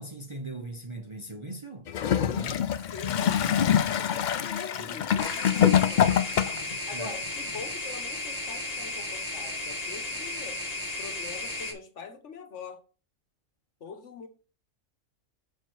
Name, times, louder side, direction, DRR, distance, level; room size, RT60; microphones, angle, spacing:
voice 1, 0.0-1.9 2.3-2.7 4.8-5.0 6.9-7.2, right 2 dB, 25° right, 0.8 m, -40 dB
Gurgling / Toilet flush, 1.9-6.7 7.6-7.7, left 9 dB, 85° left, 0.4 m, -25 dB
voice 2, 2.9-6.2 6.9-10.6 11.0-12.8 13.8-14.3, left 5 dB, 60° left, 1.4 m, -43 dB
sound 1, 5.2-11.7, left 1 dB, 30° left, 1.3 m, -34 dB
6.7 x 4.6 x 4.6 m
omnidirectional pair, 1.4 m